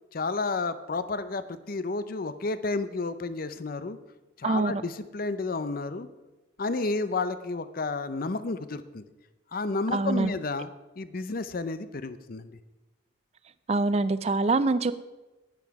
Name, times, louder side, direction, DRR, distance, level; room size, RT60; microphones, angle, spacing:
voice 1, 0.1-4.0 4.4-6.1 6.6-9.0 9.5-10.7 11.0-12.6, left 3 dB, 50° left, 13 dB, 0.6 m, -31 dB
voice 2, 4.4-4.8 9.9-10.3 13.7-14.9, right 3 dB, 35° right, 14 dB, 0.4 m, -24 dB
11.0 x 9.2 x 4.7 m, 1.1 s
head